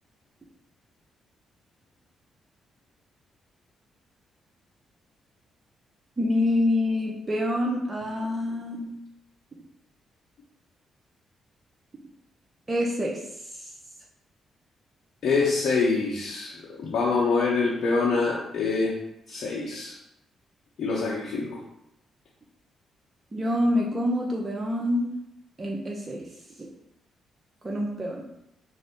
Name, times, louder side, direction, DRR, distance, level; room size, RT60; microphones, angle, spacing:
voice 1, 6.2-8.9 12.7-13.2 13.6-13.7 23.3-25.2 25.6-26.2 27.6-28.3, left 1 dB, 30° right, -2 dB, 0.7 m, -26 dB
voice 2, 15.2-18.9 19.3-20.0 20.8-21.6, left 4 dB, 60° left, -6 dB, 0.7 m, -25 dB
3.7 x 2.1 x 3.5 m, 0.84 s
hypercardioid pair, 45°, 0 cm